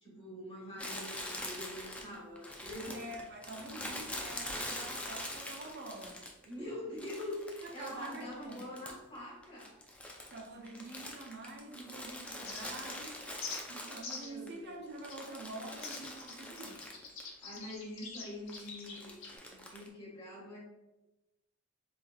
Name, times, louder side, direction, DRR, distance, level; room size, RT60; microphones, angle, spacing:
voice 1, 0.0-2.9 6.4-9.7 14.1-14.8 17.4-20.6, left 1 dB, 25° left, -5 dB, 1.5 m, -44 dB
Crumpling crinkling, 0.8-6.5 7.0-9.2 9.4-14.5 14.9-17.3 17.5-17.6 18.5-19.9, left 1 dB, 5° left, 0.4 m, -44 dB
voice 2, 2.8-6.2 7.6-8.7 10.3-13.2 13.7-16.8, right 2 dB, 50° right, 1 dB, 0.6 m, -46 dB
sound 1, 12.4-13.0 13.4-13.6 14.0-14.4 15.1-15.3 15.8-19.4, left 4 dB, 65° left, 0.9 m, -45 dB
4.3 x 3.6 x 2.2 m, 1.0 s
head